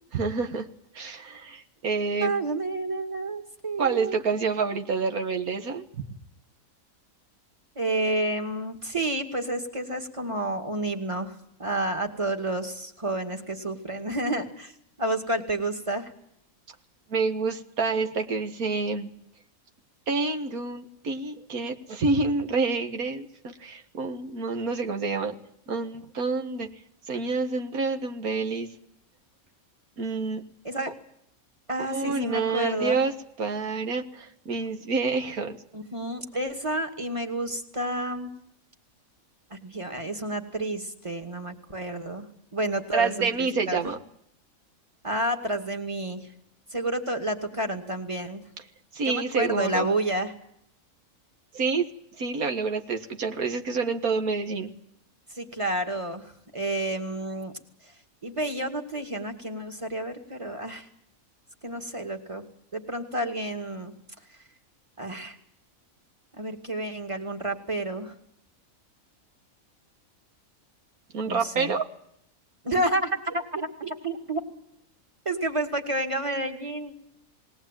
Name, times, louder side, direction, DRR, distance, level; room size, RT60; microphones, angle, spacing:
voice 1, 0.1-0.7 0.9-2.3 3.8-5.8 17.1-19.1 20.1-25.3 25.7-26.7 27.1-28.7 30.0-30.4 31.8-33.1 33.4-35.6 42.9-44.0 48.9-49.9 51.5-51.9 52.2-54.7 71.1-71.8, right 4 dB, 85° right, 6 dB, 2.1 m, -28 dB
voice 2, 2.2-4.2 7.8-11.3 11.6-14.7 15.0-16.1 30.6-30.9 31.7-33.0 35.7-38.3 39.5-42.3 42.5-43.8 45.0-46.3 46.7-48.4 49.1-50.3 55.4-57.5 58.2-60.9 61.6-62.4 62.7-63.9 65.0-65.4 66.4-68.1 71.3-71.7 72.6-74.4 75.3-76.9, right 1 dB, 20° right, 5 dB, 2.3 m, -30 dB
20.5 x 18.0 x 9.1 m, 0.72 s
omnidirectional pair, 1.5 m